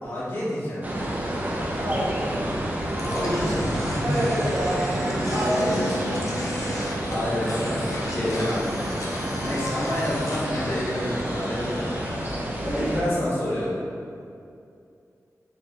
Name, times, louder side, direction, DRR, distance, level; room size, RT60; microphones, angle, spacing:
voice 1, 0.0-1.2 3.1-4.1 5.0-6.2 7.1-11.8 12.7-13.8, left 1 dB, 40° left, -9 dB, 1.3 m, -29 dB
sound 1, 0.8-13.0, right 1 dB, 30° right, 0.6 m, -29 dB
voice 2, 1.8-2.4 4.0-4.9 5.3-6.3 12.6-12.9, right 1 dB, 70° right, -9 dB, 1.2 m, -28 dB
sound 2, 3.0-12.2, left 1 dB, 60° left, 0.7 m, -37 dB
Bass guitar, 5.3-9.4, equal, 15° left, 0.6 m, -37 dB
4.4 x 3.0 x 2.9 m, 2.5 s
wide cardioid pair, 75°, 6 cm